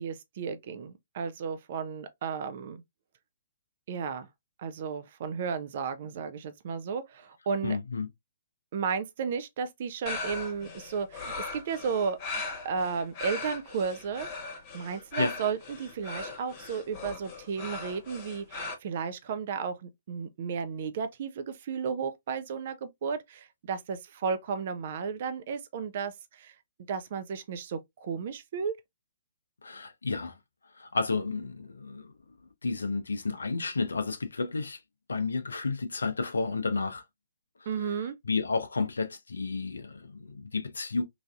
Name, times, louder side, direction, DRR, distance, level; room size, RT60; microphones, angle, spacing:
voice 1, 0.0-2.8 3.9-4.3 4.6-7.8 8.7-12.2 12.6-26.6 26.9-28.7 37.7-38.2, right 6 dB, 50° right, 0.4 m, -34 dB
voice 2, 7.6-8.1 15.2-15.3 29.6-30.4 30.7-32.1 32.6-34.8 35.1-37.0 37.8-41.0, left 4 dB, 75° left, 0.5 m, -31 dB
sound 1, 10.1-18.7, left 3 dB, 35° left, 1.0 m, -39 dB
3.2 x 2.5 x 2.3 m
figure-of-eight pair, 125°, 0 cm